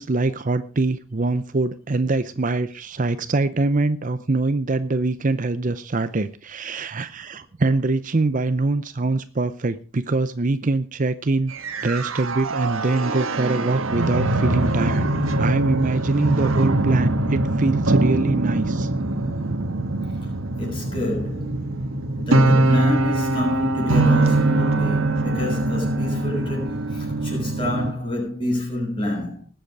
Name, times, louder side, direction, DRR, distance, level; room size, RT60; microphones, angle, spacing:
voice 1, 0.0-11.5 11.8-18.9, right 2 dB, 40° right, 0.6 m, -23 dB
sound 1, 11.5-27.9, right 2 dB, 75° right, 1.5 m, -22 dB
voice 2, 20.6-21.6 22.2-29.4, left 1 dB, 25° left, 6.6 m, -28 dB
20.0 x 7.9 x 4.7 m
head